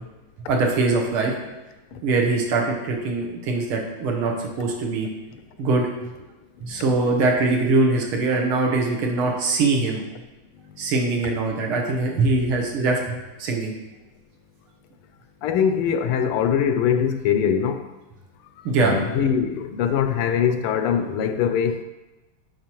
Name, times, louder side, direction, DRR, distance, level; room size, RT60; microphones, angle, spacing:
voice 1, 0.5-1.3 2.0-5.1 5.6-6.1 6.6-10.0 10.8-13.7 18.7-19.0, right 3 dB, 75° right, 1 dB, 1.9 m, -22 dB
voice 2, 15.4-17.8 18.8-21.8, left 8 dB, 85° left, 9 dB, 1.5 m, -22 dB
9.9 x 4.8 x 3.0 m, 1.1 s
omnidirectional pair, 2.4 m